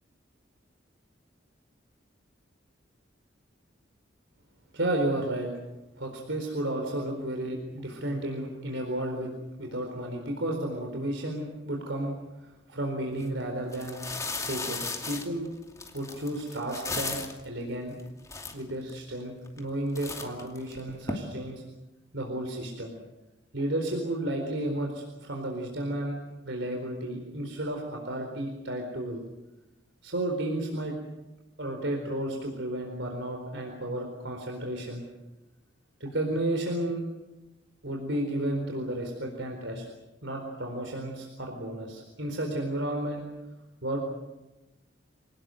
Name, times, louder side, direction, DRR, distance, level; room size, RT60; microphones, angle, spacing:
voice 1, 4.7-5.5 6.0-9.3 9.6-12.1 12.4-14.0 14.5-15.5 15.9-18.0 18.5-21.6 22.1-22.9 23.5-26.2 26.4-29.2 30.0-30.9 31.6-35.0 36.0-37.0 37.8-39.9 40.2-43.2 43.8-44.0, right 1 dB, 70° right, 2 dB, 4.3 m, -32 dB
sound 1, 13.1-13.2 13.7-17.4 18.0-18.1 18.3-19.0 19.5-19.7 19.9-21.1, left 3 dB, 15° left, 2.6 m, -36 dB
27.5 x 19.0 x 7.8 m, 1.0 s
head